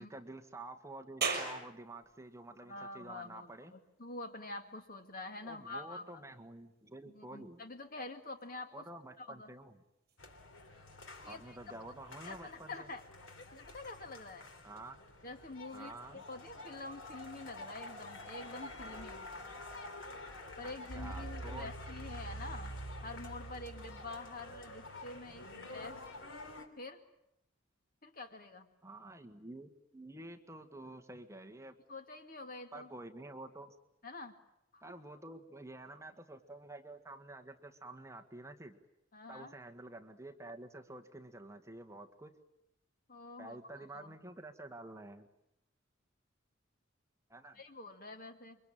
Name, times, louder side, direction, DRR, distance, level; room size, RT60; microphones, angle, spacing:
voice 1, 0.0-3.7 5.4-7.6 8.7-9.8 11.3-12.9 14.6-15.0 15.7-16.2 20.6-21.7 28.8-31.8 32.7-33.7 34.8-38.8 39.3-42.3 43.4-45.3 47.3-47.6, right 2 dB, 15° right, 4 dB, 1.6 m, -49 dB
sound 1, 1.2-14.3, right 5 dB, 50° right, 6.5 m, -47 dB
voice 2, 2.6-6.2 7.1-8.9 9.2-9.5 11.2-11.6 12.2-13.0 13.5-14.5 15.2-19.3 20.6-22.7 23.0-26.0 26.8-27.0 28.0-28.7 31.9-32.9 34.0-34.4 34.7-34.8 39.1-39.5 43.1-44.2 47.5-48.6, left 2 dB, 45° left, 6 dB, 2.4 m, -47 dB
sound 2, 10.2-26.7, left 1 dB, 75° left, 3.3 m, -47 dB
28.0 x 24.0 x 8.9 m, 0.83 s
head